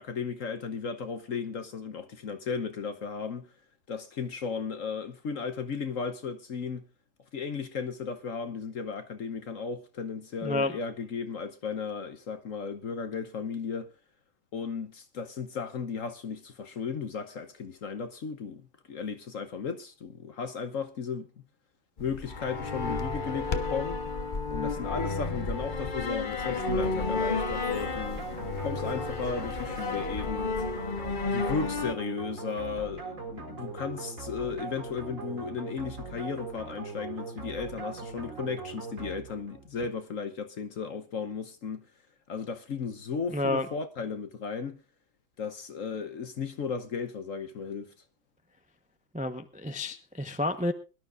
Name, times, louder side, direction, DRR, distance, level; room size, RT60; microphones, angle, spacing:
voice 1, 0.0-3.5 3.9-6.9 7.3-13.9 14.5-21.3 22.0-24.0 24.5-30.5 31.2-41.9 42.3-44.8 45.4-47.9, left 5 dB, 55° left, 1.1 m, -35 dB
voice 2, 10.4-10.7 43.3-43.7 49.1-50.7, left 2 dB, 10° right, 0.4 m, -30 dB
sound 1, 22.0-31.9, left 4 dB, 35° left, 0.8 m, -32 dB
sound 2, 26.4-39.7, right 4 dB, 40° right, 2.6 m, -40 dB
23.0 x 12.0 x 2.5 m
omnidirectional pair, 2.1 m